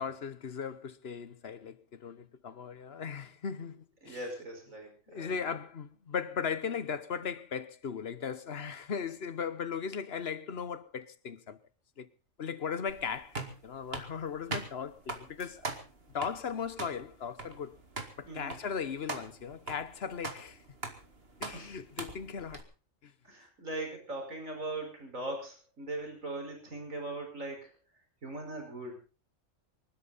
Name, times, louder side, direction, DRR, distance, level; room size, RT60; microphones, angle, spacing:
voice 1, 0.0-4.2 5.1-11.6 12.0-12.1 12.4-15.6 16.1-17.8 18.2-20.6 21.4-22.6 23.0-23.1, left 6 dB, 50° left, 1.2 m, -37 dB
voice 2, 4.0-5.4 18.3-18.6 21.5-21.8 23.3-27.7 28.2-29.0, right 2 dB, 75° right, 5.6 m, -40 dB
sound 1, 12.9-22.6, right 3 dB, 45° right, 2.3 m, -42 dB
25.0 x 12.5 x 4.0 m
omnidirectional pair, 1.4 m